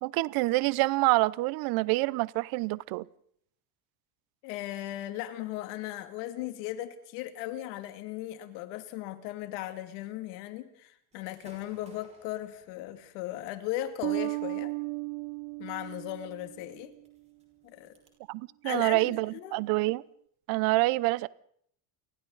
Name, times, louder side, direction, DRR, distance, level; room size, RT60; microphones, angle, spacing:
voice 1, 0.0-3.1 18.3-20.0 20.5-21.3, right 21 dB, 50° right, 0.8 m, -27 dB
voice 2, 4.4-14.7 15.6-16.9 17.6-17.9 18.6-19.6, left 14 dB, 80° left, 2.7 m, -37 dB
Gunshot gunfire / Fireworks, 11.1-18.1, right 3 dB, 15° right, 5.8 m, -63 dB
Bass guitar, 14.0-17.0, right 24 dB, 85° right, 0.9 m, -35 dB
29.5 x 24.0 x 4.0 m
cardioid pair, 175°, 46 cm